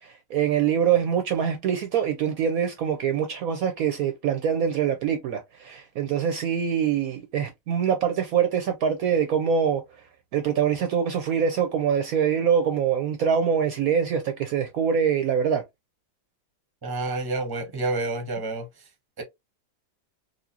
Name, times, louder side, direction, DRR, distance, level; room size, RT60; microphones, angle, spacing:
voice 1, 0.0-9.8 10.3-15.6, right 8 dB, 70° right, 0.9 m, -24 dB
voice 2, 16.8-18.7 19.2-19.3, right 2 dB, 20° right, 0.8 m, -29 dB
4.1 x 2.5 x 2.8 m
omnidirectional pair, 1.8 m